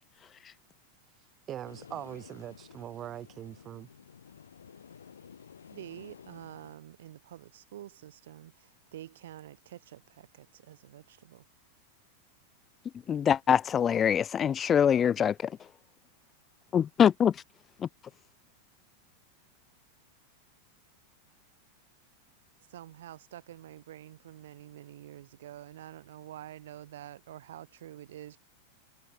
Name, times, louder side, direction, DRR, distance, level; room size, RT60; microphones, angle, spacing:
voice 1, 1.5-3.9, right 11 dB, 30° right, 1.4 m, -41 dB
sound 1, 1.6-6.8, left 7 dB, 70° left, 2.0 m, -52 dB
voice 2, 5.7-11.4 22.7-28.4, right 12 dB, 60° right, 1.2 m, -47 dB
voice 3, 13.1-15.6 16.7-17.4 17.8-17.9, left 8 dB, 25° left, 0.4 m, -24 dB
figure-of-eight pair, 90°, 0 cm